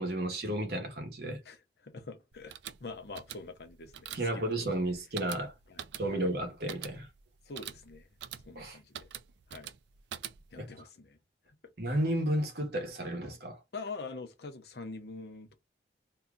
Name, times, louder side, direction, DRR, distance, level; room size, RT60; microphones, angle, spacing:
voice 1, 0.0-1.4 4.1-5.5 6.0-7.1 8.5-8.8 10.6-10.7 11.8-13.6, right 1 dB, 60° right, 1.0 m, -32 dB
voice 2, 1.8-2.6 2.8-4.7 5.7-5.8 6.1-6.3 7.5-8.1 8.5-9.1 9.5-9.7 10.5-11.2 13.7-15.5, left 3 dB, 65° left, 0.7 m, -44 dB
sound 1, 2.3-10.7, right 10 dB, 75° right, 0.4 m, -46 dB
2.8 x 2.3 x 3.6 m
head